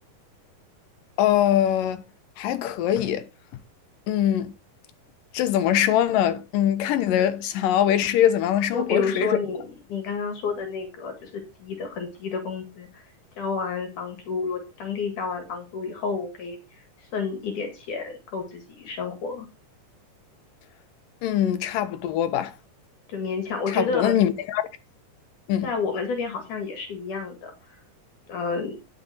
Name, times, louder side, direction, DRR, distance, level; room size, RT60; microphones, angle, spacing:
voice 1, 1.2-2.0 2.4-3.3 4.1-4.5 5.3-9.4 21.2-22.5 23.7-24.6 25.5-25.7, left 11 dB, 85° left, 2.7 m, -22 dB
voice 2, 8.7-13.0 13.4-16.6 17.0-19.5 23.1-24.1 25.6-27.7 28.3-28.8, left 5 dB, 70° left, 3.3 m, -30 dB
12.0 x 6.9 x 4.2 m
omnidirectional pair, 3.9 m